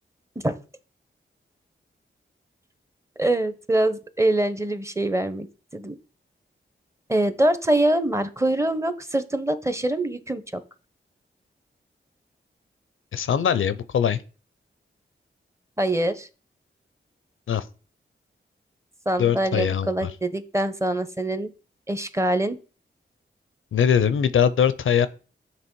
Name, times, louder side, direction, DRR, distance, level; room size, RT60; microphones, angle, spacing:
voice 1, 3.2-5.5 5.7-5.9 7.1-10.6 15.8-16.3 19.1-21.5 21.9-22.6, right 1 dB, 15° right, 0.7 m, -24 dB
voice 2, 13.1-14.2 17.5-17.6 19.2-20.1 23.7-25.1, left 8 dB, 75° left, 0.5 m, -21 dB
6.9 x 3.0 x 4.5 m
cardioid pair, 55°, 21 cm